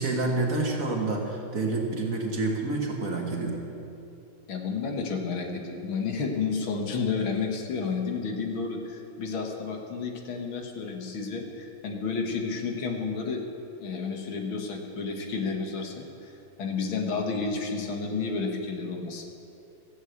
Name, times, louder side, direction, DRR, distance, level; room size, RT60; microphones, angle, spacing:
voice 1, 0.0-3.6, right 3 dB, 45° right, 0 dB, 1.7 m, -28 dB
voice 2, 4.5-13.4 13.8-16.3 16.6-19.2, left 4 dB, 75° left, 2 dB, 2.2 m, -31 dB
14.5 x 8.5 x 8.1 m, 2.8 s
omnidirectional pair, 2.2 m